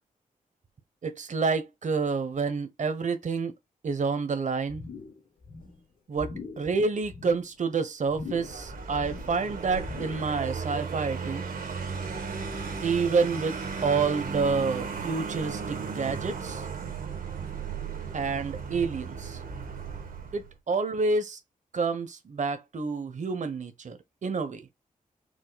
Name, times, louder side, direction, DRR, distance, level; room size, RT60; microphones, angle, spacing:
voice 1, 1.0-3.5 3.8-4.8 6.1-11.4 12.8-13.6 13.8-16.6 18.1-19.4 20.3-21.4 21.7-24.7, right 4 dB, 60° right, 0.9 m, -28 dB
sound 1, 4.7-5.2 5.4-5.8 6.2-6.7 7.0-7.5 8.1-8.6 8.9-9.4 9.8-10.3 10.7-10.8, left 4 dB, 70° left, 2.2 m, -41 dB
Vehicle, 8.3-20.5, right 5 dB, 85° right, 1.3 m, -35 dB
4.8 x 2.0 x 3.9 m
cardioid pair, 55°, 14 cm